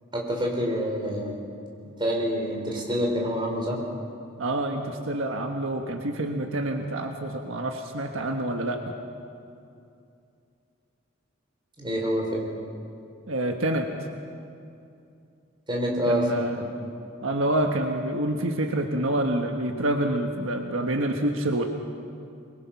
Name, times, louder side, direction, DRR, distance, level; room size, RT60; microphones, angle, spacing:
voice 1, 0.1-1.4 2.0-3.8 11.8-12.5 15.7-16.7, equal, 25° right, -1 dB, 4.2 m, -27 dB
voice 2, 4.4-8.9 13.3-13.9 16.1-16.6 17.2-21.7, right 1 dB, 75° right, 3 dB, 1.4 m, -27 dB
24.0 x 22.0 x 5.9 m, 2.6 s
head